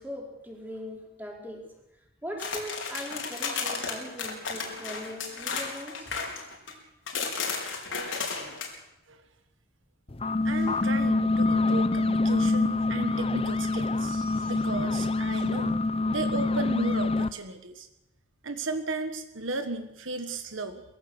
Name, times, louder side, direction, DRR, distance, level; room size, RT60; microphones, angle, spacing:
voice 1, 0.0-1.6 2.2-6.1, equal, 10° right, -1 dB, 4.5 m, -40 dB
sound 1, 2.4-6.7 7.1-8.7, left 5 dB, 75° left, 4.3 m, -33 dB
sound 2, 10.1-17.3, left 3 dB, 30° left, 0.7 m, -26 dB
voice 2, 10.4-15.8 16.1-17.9 18.4-20.8, right 3 dB, 75° right, 8 dB, 1.5 m, -35 dB
21.5 x 15.5 x 8.1 m, 0.93 s
head